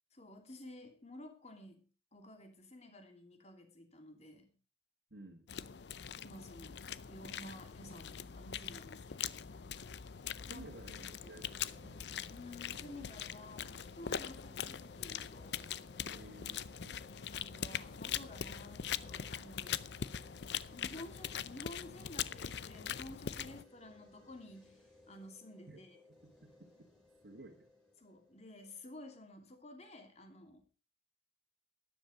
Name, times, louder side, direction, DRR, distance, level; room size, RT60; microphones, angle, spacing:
voice 1, 0.1-1.8 2.1-4.5 6.2-6.8 7.1-9.4 10.5-10.7 12.3-15.7 17.3-19.8 20.7-24.8 25.1-26.0 28.0-30.6, left 1 dB, 40° left, 5 dB, 2.8 m, -52 dB
voice 2, 5.1-5.5 10.4-12.0 16.0-17.0 25.7-25.8 26.1-26.7 27.2-27.7, right 1 dB, 70° right, -1 dB, 2.1 m, -54 dB
sound 1, 5.5-23.6, left 8 dB, 65° left, 0.6 m, -42 dB
sound 2, 10.0-29.1, left 2 dB, ahead, 4.6 m, -64 dB
13.0 x 10.5 x 5.1 m, 0.35 s
head